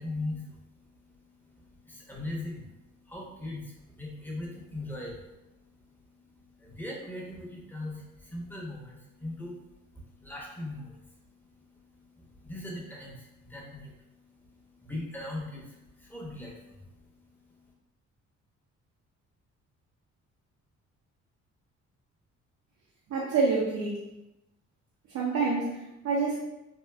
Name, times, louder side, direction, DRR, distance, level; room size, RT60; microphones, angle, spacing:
voice 1, 0.0-17.7, left 2 dB, 5° left, -3 dB, 0.8 m, -41 dB
voice 2, 23.1-24.0 25.1-26.4, right 4 dB, 65° right, -4 dB, 0.6 m, -27 dB
3.5 x 2.5 x 2.2 m, 0.96 s
cardioid pair, 90°, 30 cm